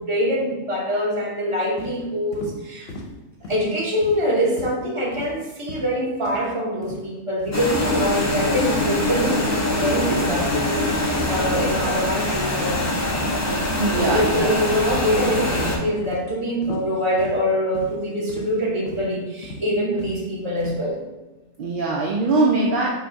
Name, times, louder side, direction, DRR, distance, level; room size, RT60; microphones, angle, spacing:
voice 1, 0.0-2.9 3.5-12.8 13.9-21.0, equal, 25° right, -3 dB, 0.9 m, -24 dB
sound 1, 1.8-2.0 2.3-2.6 2.9-3.1 3.4-3.7 4.0-4.3 4.6-4.8 5.1-5.4 5.7-5.9 6.3-6.5 6.8-7.0 7.4-7.6 8.0-8.2 8.6-8.8 9.2-9.4 9.8-10.0 10.3-10.5 10.9-11.1 11.5-11.8 12.0-12.2 12.6-12.9 13.1-13.4 13.7-13.9 14.3-14.6 14.9-15.2 15.4-15.7 16.1-16.3 16.6-16.9 17.2-17.4 17.7-18.0 18.3-18.5 18.9-19.0 19.4-19.6 20.0-20.2 20.6-20.8, left 1 dB, 55° left, 0.8 m, -37 dB
sound 2, 7.5-15.8, left 1 dB, 25° left, 0.3 m, -23 dB
voice 2, 13.8-14.7 21.6-22.9, right 3 dB, 65° right, -2 dB, 0.5 m, -22 dB
5.6 x 2.3 x 3.8 m, 1.1 s
omnidirectional pair, 1.4 m